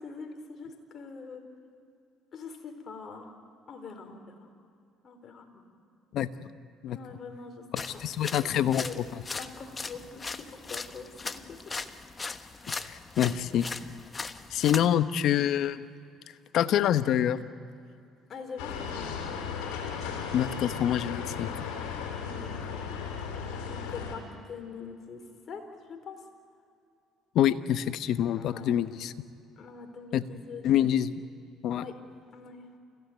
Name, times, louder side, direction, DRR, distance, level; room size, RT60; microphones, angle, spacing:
voice 1, 0.0-1.4 2.3-3.3 3.7-4.5 5.0-5.7 6.9-7.6 7.9-8.1 8.4-11.6 18.3-19.3 22.2-22.9 23.1-26.2 28.3-28.9 29.6-30.6 31.7-31.9 32.3-32.7, left 5 dB, 45° left, 5 dB, 4.2 m, -44 dB
voice 2, 7.7-9.1 12.9-13.7 14.5-15.8 16.5-17.4 20.3-21.5 27.3-29.1 30.1-30.2 30.6-31.2 31.6-31.8, left 10 dB, 65° left, 12 dB, 1.0 m, -26 dB
sound 1, 7.8-14.9, left 4 dB, 25° left, 1.1 m, -39 dB
sound 2, 18.6-24.2, left 6 dB, 80° left, 4.1 m, -36 dB
28.5 x 16.0 x 9.4 m, 2.5 s
supercardioid pair, 75°, 0 cm